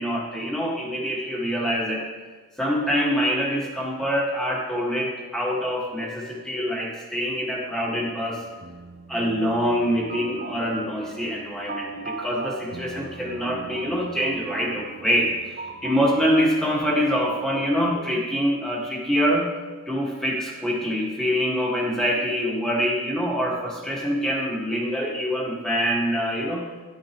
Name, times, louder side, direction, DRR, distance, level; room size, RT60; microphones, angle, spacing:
voice 1, 0.0-2.1 2.6-8.4 9.1-15.3 15.8-19.5 19.9-26.7, equal, 5° left, -3 dB, 1.8 m, -25 dB
sound 1, 7.8-18.2, right 4 dB, 40° right, 0.5 m, -39 dB
13.0 x 10.5 x 3.1 m, 1.4 s
head